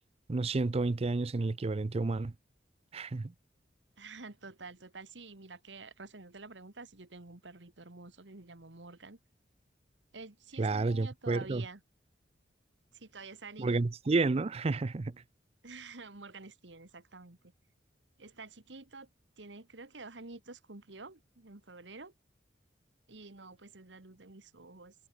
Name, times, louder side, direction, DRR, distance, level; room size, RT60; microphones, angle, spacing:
voice 1, 0.3-2.3 2.9-3.3 10.6-11.7 13.6-15.2, right 3 dB, 35° right, 0.5 m, -30 dB
voice 2, 4.0-9.2 10.1-11.8 12.9-13.8 15.6-17.5 18.2-19.1 19.4-22.1 23.1-25.0, right 3 dB, 85° right, 1.9 m, -49 dB
head